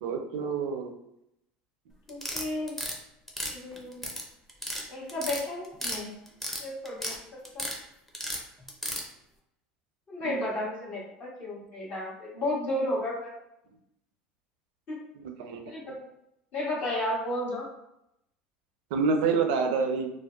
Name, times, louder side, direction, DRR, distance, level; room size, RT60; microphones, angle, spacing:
voice 1, 0.0-0.9 10.2-10.4 15.2-15.6 18.9-20.1, right 5 dB, 70° right, 6 dB, 0.4 m, -27 dB
voice 2, 2.1-2.7 3.5-4.0 4.9-6.1 6.6-7.6 10.1-13.3 14.9-15.0 15.6-16.0 16.5-17.7, left 1 dB, 45° left, -8 dB, 1.1 m, -33 dB
sound 1, 2.1-3.0 3.3-4.2 4.5-4.8 5.1-6.0 6.3-7.2 7.4-7.8 8.1-9.0, equal, 5° left, 0.6 m, -33 dB
2.5 x 2.2 x 2.3 m, 0.82 s
hypercardioid pair, 80°, 4 cm